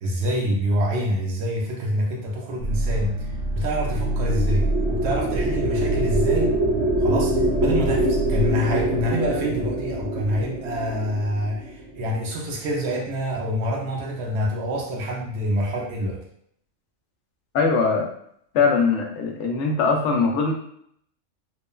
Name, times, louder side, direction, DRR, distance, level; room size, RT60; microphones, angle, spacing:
voice 1, 0.0-3.1 3.5-6.5 7.0-16.2, equal, 65° right, -1 dB, 0.8 m, -26 dB
sound 1, 2.6-8.5, right 1 dB, 30° right, 0.5 m, -27 dB
sound 2, 3.7-12.2, right 1 dB, 80° right, 1.3 m, -25 dB
voice 2, 17.5-18.1 18.5-20.5, left 4 dB, 65° left, 1 dB, 0.8 m, -21 dB
3.0 x 2.1 x 2.2 m, 0.68 s
omnidirectional pair, 1.4 m